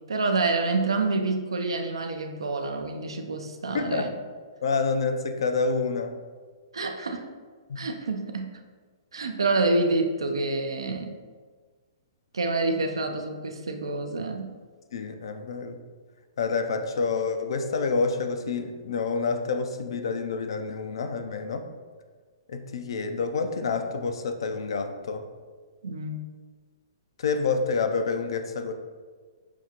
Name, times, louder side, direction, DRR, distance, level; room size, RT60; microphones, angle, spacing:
voice 1, 0.1-4.1 6.7-7.2 7.8-8.5 9.1-11.2 12.3-14.5 25.8-26.2, right 3 dB, 90° right, 5 dB, 0.4 m, -27 dB
voice 2, 3.7-4.1 4.6-6.2 7.7-7.8 14.9-15.8 16.4-21.7 22.5-25.3 27.2-28.7, left 4 dB, 70° left, 7 dB, 0.4 m, -28 dB
5.9 x 2.4 x 2.8 m, 1.5 s
hypercardioid pair, 130°, 3 cm